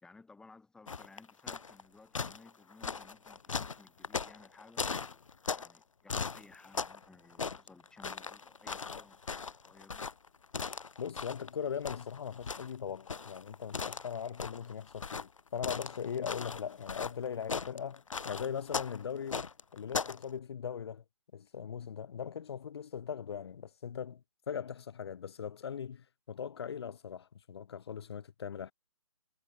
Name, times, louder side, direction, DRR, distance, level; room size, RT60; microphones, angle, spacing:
voice 1, 0.0-5.2 5.5-10.0, left 3 dB, 5° left, 4.1 m, -58 dB
sound 1, 0.9-1.8 2.2-5.8 6.1-7.1 7.3-11.5 11.9-20.2, left 5 dB, 75° left, 1.1 m, -38 dB
voice 2, 11.0-21.0 21.3-28.7, left 7 dB, 50° left, 1.1 m, -40 dB
figure-of-eight pair, 150°, 17 cm